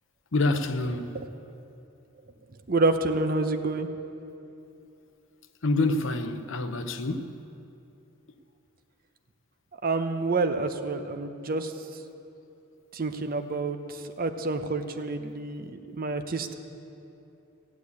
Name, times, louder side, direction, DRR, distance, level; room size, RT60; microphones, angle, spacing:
voice 1, 0.3-1.2 5.6-7.3, left 2 dB, 60° left, 0.8 m, -27 dB
voice 2, 2.7-3.9 9.8-11.7 12.9-16.5, right 3 dB, 45° right, 0.8 m, -28 dB
15.0 x 8.4 x 8.4 m
head